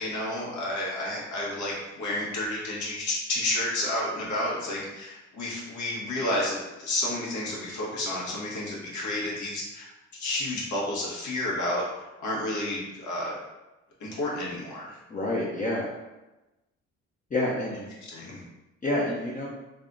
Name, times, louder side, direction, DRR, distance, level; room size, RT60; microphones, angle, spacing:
voice 1, 0.0-9.9 10.2-13.4 14.0-15.0 18.0-18.4, left 1 dB, 70° left, -4 dB, 1.3 m, -31 dB
voice 2, 15.1-15.9 17.3-17.8 18.8-19.5, left 1 dB, 25° left, -4 dB, 0.6 m, -28 dB
3.4 x 2.3 x 3.8 m, 1.0 s
cardioid pair, 90°, 30 cm